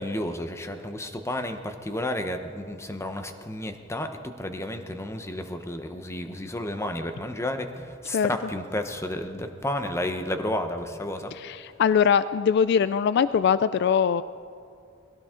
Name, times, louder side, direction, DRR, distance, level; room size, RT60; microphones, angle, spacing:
voice 1, 0.0-11.3, left 1 dB, 15° left, 7 dB, 0.9 m, -32 dB
voice 2, 11.3-14.2, left 7 dB, 55° left, 15 dB, 0.3 m, -22 dB
21.5 x 17.0 x 3.8 m, 2.4 s
head